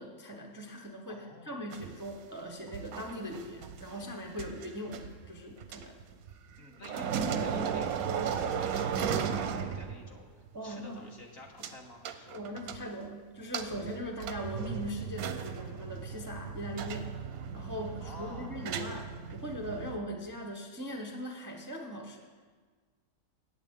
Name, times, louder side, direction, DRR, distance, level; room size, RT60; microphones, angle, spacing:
voice 1, 0.0-6.0 10.5-11.1 12.3-17.1 17.5-22.2, equal, 20° right, 1 dB, 0.6 m, -40 dB
voice 2, 1.1-1.6 6.6-12.9 18.0-18.6, left 2 dB, 45° left, 0 dB, 1.4 m, -50 dB
sound 1, 1.7-6.6 6.8-10.2 10.5-10.6 11.6-11.7 12.1-13.1 13.5-20.0, right 7 dB, 90° right, 1.2 m, -36 dB
15.0 x 9.0 x 3.6 m, 1.5 s
omnidirectional pair, 1.5 m